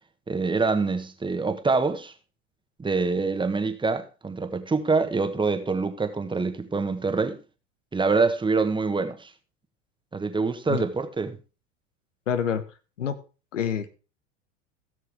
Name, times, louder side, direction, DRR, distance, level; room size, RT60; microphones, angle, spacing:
voice 1, 0.3-2.1 2.8-7.4 7.9-9.3 10.1-11.4, right 4 dB, 15° right, 1.4 m, -25 dB
voice 2, 12.3-12.6 13.0-13.2 13.5-13.9, left 8 dB, 90° left, 1.2 m, -27 dB
17.0 x 6.6 x 3.6 m
hypercardioid pair, 90°, 36 cm